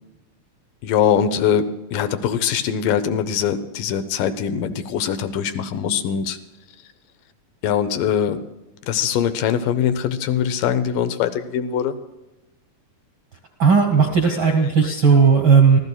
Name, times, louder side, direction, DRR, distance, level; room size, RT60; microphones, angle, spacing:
voice 1, 0.8-6.4 7.6-8.4 8.8-12.0 14.4-14.9, left 8 dB, 80° left, 10 dB, 2.4 m, -22 dB
voice 2, 13.6-15.8, right 5 dB, 65° right, 3 dB, 1.2 m, -15 dB
24.5 x 15.0 x 2.3 m, 1.0 s
omnidirectional pair, 3.8 m